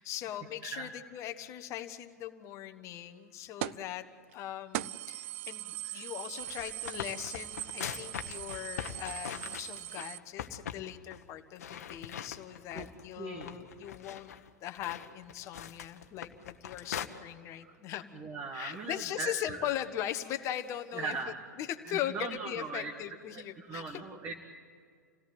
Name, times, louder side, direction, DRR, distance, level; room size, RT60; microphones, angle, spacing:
voice 1, 0.0-4.0 4.3-14.3 14.6-18.2 18.5-24.0, left 12 dB, 35° left, 8 dB, 1.4 m, -40 dB
sound 1, 3.6-3.9 4.3-4.4 4.7-10.2, right 15 dB, 45° right, 0.6 m, -40 dB
sound 2, 6.3-10.0 10.4-10.8 11.1-11.2 11.6-13.0 13.4-17.1, left 9 dB, 60° left, 1.3 m, -42 dB
voice 2, 13.2-13.6 18.1-19.3 21.0-21.3 22.1-22.9 23.6-24.4, right 4 dB, 25° right, 2 dB, 2.0 m, -38 dB
28.5 x 17.5 x 8.1 m, 2.1 s
figure-of-eight pair, 105°, 9 cm